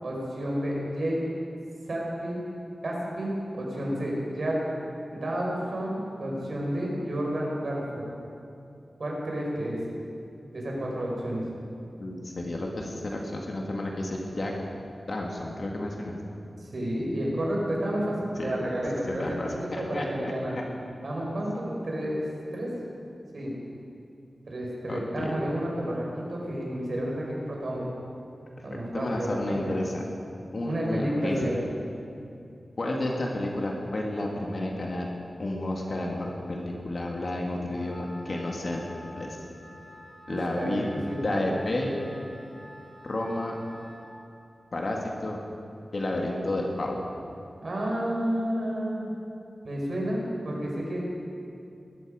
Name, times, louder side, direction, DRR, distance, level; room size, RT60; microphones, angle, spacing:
voice 1, 0.0-1.2 1.9-2.4 2.8-4.6 5.1-8.0 9.0-9.8 10.5-11.4 16.6-20.6 21.0-22.3 22.5-22.7 23.3-23.5 24.5-27.9 28.6-29.7 30.6-31.6 40.3-41.3 47.6-49.1 49.6-51.0, equal, 60° right, -3 dB, 4.8 m, -30 dB
voice 2, 12.0-14.5 15.1-16.2 18.4-18.6 19.2-20.6 21.5-21.6 24.9-25.3 28.9-30.1 30.5-31.5 32.8-35.1 35.4-38.8 39.1-39.4 40.3-40.9 41.2-42.0 43.0-43.5 44.7-45.4 45.9-47.0, left 1 dB, 50° left, -1 dB, 2.1 m, -31 dB
Wind instrument woodwind instrument, 37.7-44.1, left 1 dB, 10° left, 3.3 m, -48 dB
21.0 x 13.5 x 5.0 m, 2.6 s
wide cardioid pair, 110°, 0 cm